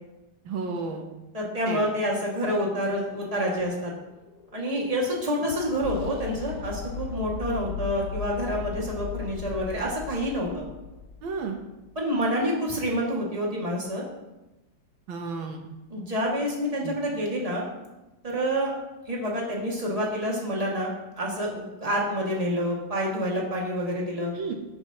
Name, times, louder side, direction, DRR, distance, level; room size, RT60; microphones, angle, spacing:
voice 1, 0.5-1.1 1.7-1.8 11.2-11.6 15.1-15.6 16.8-16.9 24.3-24.5, right 4 dB, 90° right, 3 dB, 1.9 m, -32 dB
voice 2, 1.3-3.9 4.5-10.6 12.0-14.0 15.9-17.7 18.2-18.7 19.1-24.3, equal, 20° right, -3 dB, 2.2 m, -28 dB
sound 1, 3.6-11.7, left 7 dB, 65° left, 1.0 m, -38 dB
14.5 x 7.9 x 3.0 m, 1.0 s
omnidirectional pair, 2.1 m